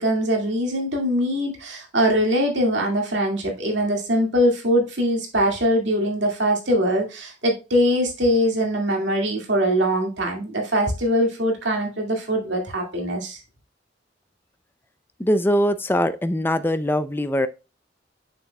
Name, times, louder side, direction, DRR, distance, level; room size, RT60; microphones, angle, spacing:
voice 1, 0.0-13.4, equal, 80° right, 2.1 m, -22 dB
voice 2, 15.2-17.5, equal, 10° left, 0.4 m, -22 dB
7.1 x 6.1 x 2.3 m
head